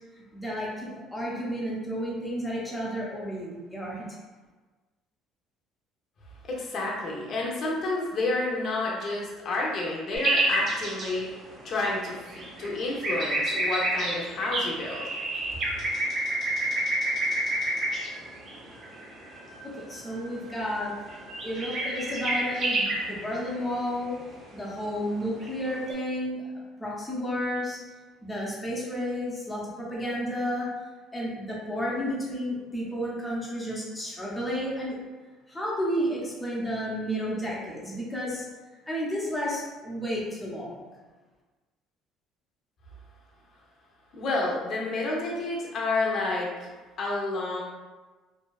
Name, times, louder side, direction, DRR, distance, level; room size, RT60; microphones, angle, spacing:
voice 1, 0.1-4.0 19.6-20.9 21.4-24.1 24.5-26.5 26.8-27.8 28.2-30.7 31.1-35.0 35.5-38.4 38.9-40.8, equal, 10° left, -5 dB, 0.6 m, -32 dB
voice 2, 6.4-11.4 11.6-15.5 44.1-46.7 47.0-47.6, left 2 dB, 45° left, -2 dB, 0.6 m, -30 dB
sound 1, 10.1-25.9, right 1 dB, 45° right, 0.5 m, -30 dB
2.6 x 2.2 x 2.3 m, 1.3 s
cardioid pair, 135°, 0 cm